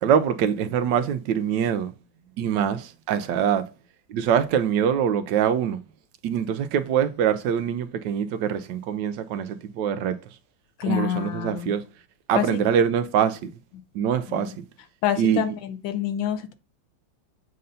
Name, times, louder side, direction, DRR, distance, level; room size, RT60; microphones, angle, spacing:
voice 1, 0.0-1.9 2.4-3.7 4.1-5.8 6.2-10.2 10.9-11.8 12.3-13.5 13.9-14.6 15.2-15.4, right 8 dB, 75° right, 1.2 m, -24 dB
voice 2, 10.8-11.7 12.4-12.6 14.3-14.5 15.0-16.5, left 10 dB, 90° left, 1.6 m, -27 dB
7.6 x 2.6 x 5.4 m
omnidirectional pair, 2.1 m